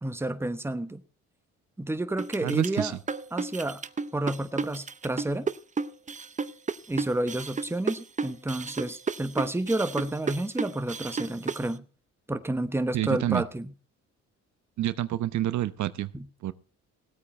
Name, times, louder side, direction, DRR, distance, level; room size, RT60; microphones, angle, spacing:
voice 1, 0.0-1.0 1.8-2.9 3.3-3.8 4.1-5.5 6.9-11.8 12.3-13.7 16.1-16.2, right 1 dB, 10° right, 1.1 m, -30 dB
sound 1, 2.2-11.7, right 4 dB, 25° right, 0.7 m, -32 dB
voice 2, 2.4-2.9 12.9-13.4 14.8-16.1 16.4-16.5, right 13 dB, 70° right, 0.7 m, -28 dB
17.5 x 8.5 x 4.3 m
cardioid pair, 90°, 30 cm